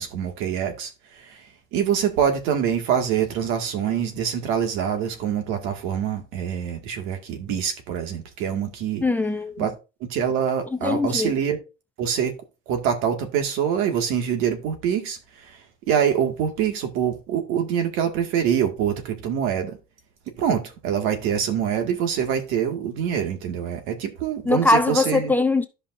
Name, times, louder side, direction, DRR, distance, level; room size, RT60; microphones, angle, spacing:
voice 1, 0.0-1.4 1.7-9.0 9.6-9.7 10.1-11.6 12.0-12.3 12.7-19.8 20.4-25.3, right 8 dB, 85° right, 2.1 m, -25 dB
voice 2, 9.0-9.6 10.8-11.3 24.5-25.7, left 3 dB, 10° left, 0.5 m, -21 dB
13.0 x 5.4 x 2.6 m
cardioid pair, 160°, 21 cm